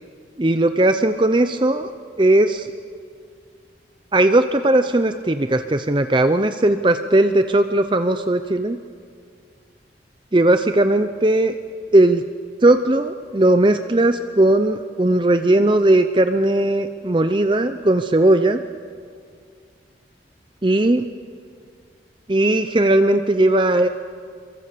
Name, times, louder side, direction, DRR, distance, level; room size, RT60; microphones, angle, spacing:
voice 1, 0.4-1.9 2.2-2.7 4.1-8.8 10.3-11.5 11.9-12.2 12.6-18.6 20.6-21.1 22.3-23.9, right 1 dB, 25° right, 8 dB, 0.7 m, -17 dB
27.0 x 23.0 x 6.8 m, 2.2 s
head